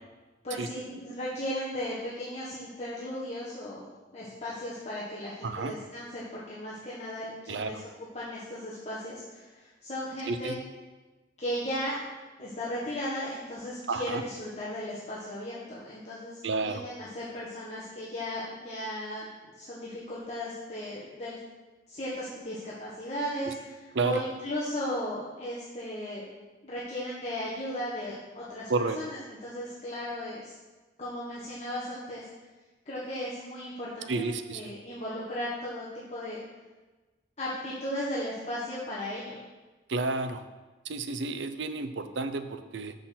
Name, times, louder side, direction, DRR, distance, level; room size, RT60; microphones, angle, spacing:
voice 1, 0.4-3.8 4.1-7.8 8.1-10.6 11.4-21.4 21.9-23.8 24.0-26.2 26.6-28.7 28.9-30.5 31.0-32.2 32.8-36.4 37.4-39.4, left 1 dB, 40° left, -8 dB, 1.3 m, -36 dB
voice 2, 5.4-5.7 7.5-7.7 10.3-10.6 13.9-14.2 16.4-16.8 23.5-23.6 23.9-24.2 28.7-29.0 34.1-34.7 39.9-40.4 40.8-42.9, right 3 dB, 85° right, 10 dB, 0.6 m, -31 dB
6.4 x 5.7 x 5.9 m, 1.2 s
head